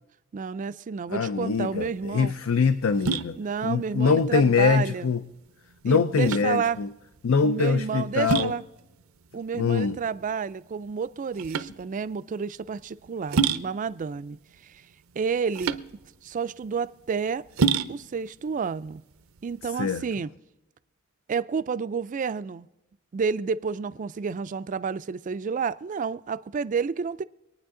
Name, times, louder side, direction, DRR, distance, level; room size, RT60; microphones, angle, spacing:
voice 1, 0.3-2.3 3.4-5.1 5.8-6.8 7.4-8.6 9.3-14.4 14.6-14.8 15.2-15.8 16.2-17.4 17.9-19.0 19.4-20.3 21.3-22.7 23.1-27.2, right 6 dB, 40° right, 0.4 m, -30 dB
voice 2, 1.1-3.4 3.6-5.2 5.8-6.9 7.2-8.5 9.5-10.0 19.8-20.0, left 5 dB, 75° left, 0.5 m, -23 dB
sound 1, 1.5-20.0, right 5 dB, 80° right, 0.6 m, -32 dB
24.5 x 9.4 x 3.7 m
head